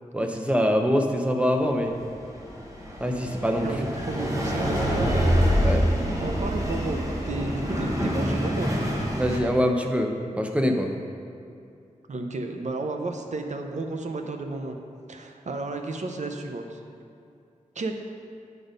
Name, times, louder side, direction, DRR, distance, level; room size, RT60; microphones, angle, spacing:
voice 1, 0.1-1.9 3.0-3.7 5.6-5.8 9.2-10.1 10.4-10.9, equal, 10° right, 3 dB, 0.7 m, -24 dB
sound 1, 1.8-9.4, equal, 25° right, 1.3 m, -26 dB
voice 2, 3.6-5.4 6.2-7.0 7.3-8.9 12.1-14.8 15.1-16.8 17.8-17.9, right 3 dB, 60° right, 4 dB, 0.7 m, -32 dB
sound 2, 4.7-6.9, left 2 dB, 85° left, 0.4 m, -32 dB
9.2 x 4.1 x 5.1 m, 2.4 s
wide cardioid pair, 85°, 13 cm